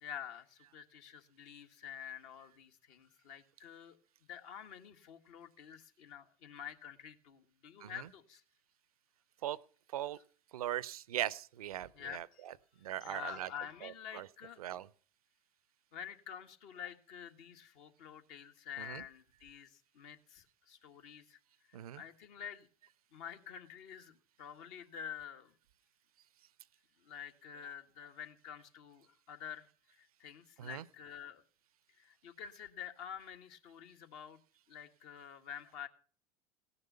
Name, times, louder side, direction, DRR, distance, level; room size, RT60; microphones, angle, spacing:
voice 1, 0.0-4.0 4.3-8.4 11.9-12.6 13.0-14.6 15.9-21.4 21.7-22.7 23.1-25.5 27.0-31.4 31.9-34.4 34.7-35.9, left 8 dB, 55° left, 6 dB, 1.7 m, -48 dB
voice 2, 10.5-12.5 12.8-13.5 13.8-14.3 14.6-14.9 18.8-19.0 21.7-22.0 30.6-30.8, right 12 dB, 70° right, 22 dB, 0.6 m, -39 dB
17.0 x 9.7 x 5.6 m, 0.43 s
figure-of-eight pair, 75°, 19 cm